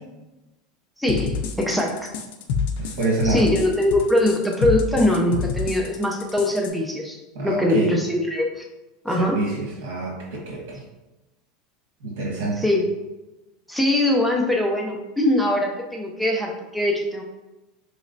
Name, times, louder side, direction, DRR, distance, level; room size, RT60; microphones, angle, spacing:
voice 1, 1.0-2.1 3.2-7.2 7.4-8.6 9.0-9.4 12.6-12.9 13.7-17.2, left 1 dB, ahead, 0 dB, 0.4 m, -22 dB
sound 1, 1.1-6.7, left 5 dB, 70° left, 0.4 m, -27 dB
voice 2, 2.8-3.4 7.3-7.9 9.2-10.2 10.5-10.8 12.0-12.6, right 3 dB, 85° right, -2 dB, 1.2 m, -26 dB
4.1 x 3.1 x 2.6 m, 1.0 s
supercardioid pair, 145°, 0 cm